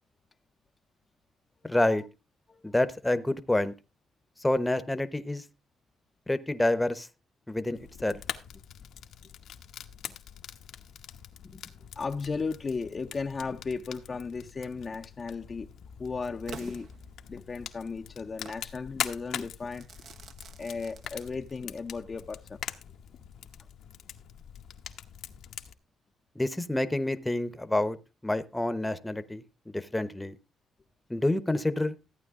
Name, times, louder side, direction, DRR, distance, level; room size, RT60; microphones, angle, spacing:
voice 1, 1.6-2.0 2.6-3.7 4.4-5.4 6.3-7.1 7.5-8.2 26.3-28.0 28.2-30.4 31.1-31.9, left 1 dB, 10° left, 0.9 m, -28 dB
Fire, 7.8-25.7, left 9 dB, 75° left, 1.0 m, -43 dB
voice 2, 12.0-15.7 16.0-16.9 17.3-19.9 20.6-22.6, left 4 dB, 35° left, 0.6 m, -35 dB
Crackle / Fireworks, 16.5-17.6 18.5-18.7 19.7-21.7, right 6 dB, 65° right, 1.1 m, -48 dB
14.0 x 9.0 x 3.7 m
cardioid pair, 90°, 0 cm